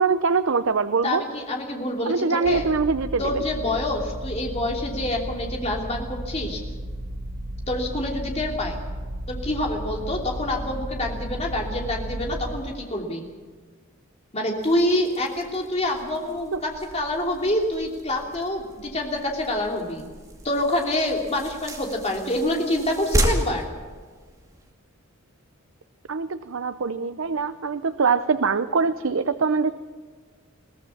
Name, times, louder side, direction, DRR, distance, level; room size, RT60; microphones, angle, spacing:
voice 1, 0.0-1.2 2.1-3.5 16.5-16.6 26.1-29.7, right 4 dB, 70° right, 12 dB, 0.6 m, -23 dB
voice 2, 1.0-2.7 3.2-6.6 7.7-8.8 9.3-13.2 14.3-20.0 20.4-23.7, left 1 dB, 30° left, 1 dB, 3.0 m, -26 dB
sound 1, 2.4-12.6, equal, 85° right, 7.3 m, -34 dB
sound 2, 14.6-24.7, right 1 dB, 15° right, 2.4 m, -33 dB
22.0 x 17.0 x 7.2 m, 1.5 s
head